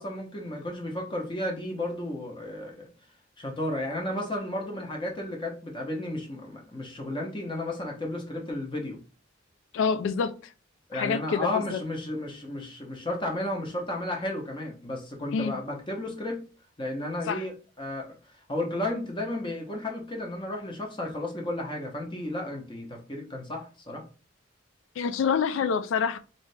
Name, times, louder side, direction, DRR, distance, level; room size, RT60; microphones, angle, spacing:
voice 1, 0.0-2.9 3.4-9.0 10.9-16.4 16.8-18.2 18.5-24.0, left 1 dB, 25° left, 0.8 m, -33 dB
voice 2, 9.7-10.4 10.9-11.8 15.3-15.6 17.3-17.4 25.0-26.2, left 6 dB, 80° left, 0.3 m, -27 dB
3.2 x 2.7 x 3.3 m
head